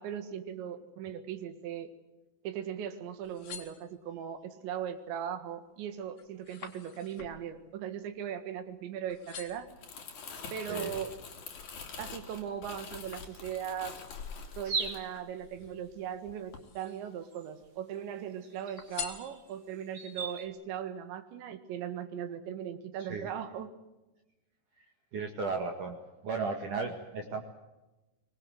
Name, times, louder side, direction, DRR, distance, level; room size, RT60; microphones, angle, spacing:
voice 1, 0.0-1.9 2.4-9.7 10.5-11.2 12.0-13.9 14.6-23.7, right 9 dB, 75° right, 9 dB, 3.9 m, -39 dB
sound 1, 3.1-4.4 4.9-5.3 5.7-8.8 9.1-9.8 10.4-11.9 12.3-13.9 14.8-15.9 16.4-17.2 17.6-18.3 18.8-19.8 20.3-20.4, left 8 dB, 60° left, 3.9 m, -47 dB
Crumpling crinkling, 9.5-15.9 16.3-16.6, left 5 dB, 45° left, 3.7 m, -45 dB
sound 2, 14.6-15.2 16.9-17.0 17.3-17.5 18.4-20.5, right 5 dB, 35° right, 2.2 m, -38 dB
voice 2, 23.0-23.3 24.8-26.0 26.2-27.4, right 4 dB, 55° right, 3 dB, 2.8 m, -35 dB
25.0 x 20.5 x 7.8 m, 1.0 s
omnidirectional pair, 5.3 m